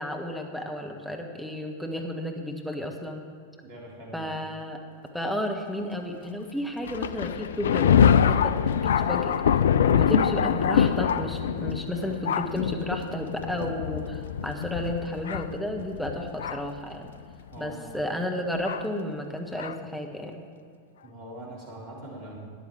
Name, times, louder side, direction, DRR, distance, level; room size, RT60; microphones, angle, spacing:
voice 1, 0.0-3.2 4.1-4.8 5.1-9.3 9.9-17.1 17.6-20.4, left 1 dB, ahead, 2 dB, 1.4 m, -32 dB
voice 2, 3.6-4.3 17.5-18.0 21.0-22.4, right 1 dB, 45° right, -3 dB, 3.5 m, -42 dB
Thunder, 6.9-16.8 17.6-17.7 18.7-18.8 19.6-19.7, left 8 dB, 65° left, 0.3 m, -24 dB
13.5 x 10.5 x 4.6 m, 2.2 s
figure-of-eight pair, 90°, 0 cm